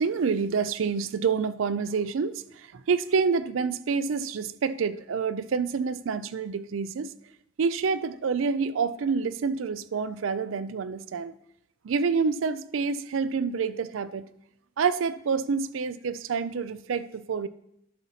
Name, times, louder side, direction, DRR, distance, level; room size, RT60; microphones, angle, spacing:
voice 1, 0.0-7.1 7.6-11.3 11.8-14.2 14.8-17.5, right 5 dB, 85° right, 14 dB, 0.4 m, -27 dB
11.5 x 4.0 x 5.7 m, 0.77 s
head